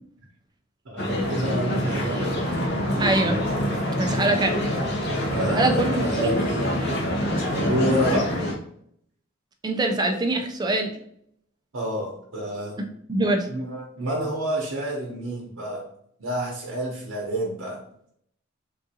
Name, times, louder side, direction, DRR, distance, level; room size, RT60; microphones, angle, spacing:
voice 1, 0.9-2.3 2.7-3.2 5.3-7.0 7.6-8.3 11.7-12.8 13.5-15.8 16.2-17.8, right 1 dB, 80° right, -2 dB, 0.8 m, -29 dB
sound 1, 1.0-8.5, equal, 55° left, 0.7 m, -25 dB
voice 2, 3.0-3.4 4.0-4.6 5.4-6.3 9.6-11.0 13.1-13.5, right 2 dB, 20° right, 3 dB, 0.4 m, -23 dB
3.6 x 2.5 x 2.7 m, 0.67 s
head